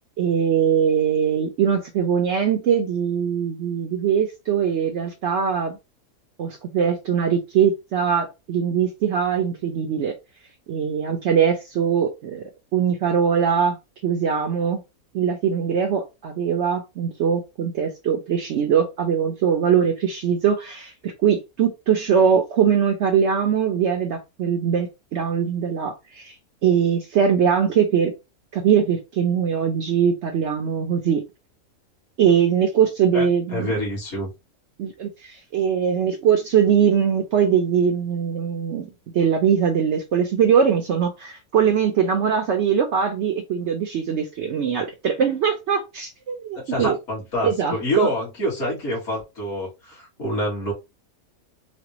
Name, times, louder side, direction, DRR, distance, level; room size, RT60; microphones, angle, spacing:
voice 1, 0.2-5.8 6.4-10.1 10.7-12.4 12.7-13.8 14.0-14.8 15.1-26.4 26.6-28.1 28.5-31.2 32.2-33.7 34.8-47.0 47.4-48.1, right 7 dB, 65° right, 0.7 m, -21 dB
voice 2, 33.1-34.3 46.7-50.7, equal, 50° left, 2.0 m, -27 dB
4.2 x 2.2 x 2.9 m
omnidirectional pair, 1.5 m